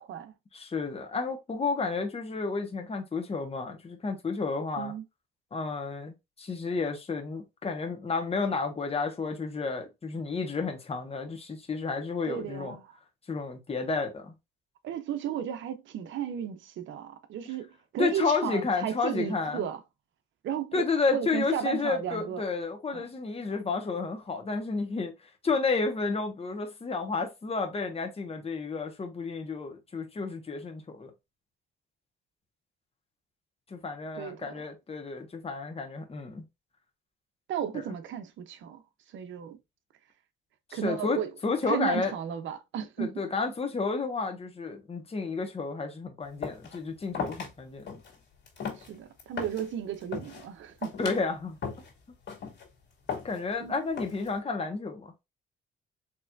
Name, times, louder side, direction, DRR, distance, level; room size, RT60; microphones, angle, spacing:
voice 1, 0.0-0.3 4.8-5.0 12.3-12.9 14.8-19.8 20.4-22.4 22.9-23.1 34.1-34.6 37.5-38.8 39.1-39.6 40.7-41.3 41.7-43.1 48.8-51.1 53.6-53.7, right 9 dB, 75° right, 0.7 m, -34 dB
voice 2, 0.5-4.9 5.5-12.8 13.3-14.3 18.0-19.7 20.7-25.1 25.4-31.1 33.7-36.4 40.7-41.2 41.4-42.1 43.0-47.9 51.0-51.6 53.2-55.1, left 4 dB, 30° left, 1.3 m, -31 dB
sound 1, 46.4-46.8 47.1-47.5 47.9-48.1 48.5-49.7 50.0-50.4 50.8-51.2 51.6-51.9 52.3-52.6 53.1-53.5 54.0-54.4, left 6 dB, 60° left, 2.4 m, -36 dB
4.6 x 3.2 x 2.5 m
cardioid pair, 90°, 20 cm